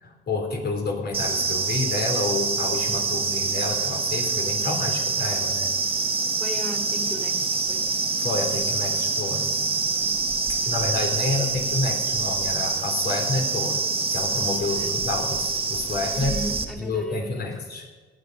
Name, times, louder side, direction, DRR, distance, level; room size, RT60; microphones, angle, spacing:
voice 1, 0.0-5.7 8.2-9.5 10.5-13.8 14.1-16.3 16.8-17.9, left 3 dB, 55° left, 3 dB, 3.4 m, -29 dB
sound 1, 1.1-16.6, right 4 dB, 30° right, 1.4 m, -26 dB
voice 2, 6.4-7.8 14.7-15.0 16.1-17.5, right 1 dB, ahead, 3 dB, 2.8 m, -36 dB
17.5 x 10.5 x 5.3 m, 1.3 s
cardioid pair, 90°, 20 cm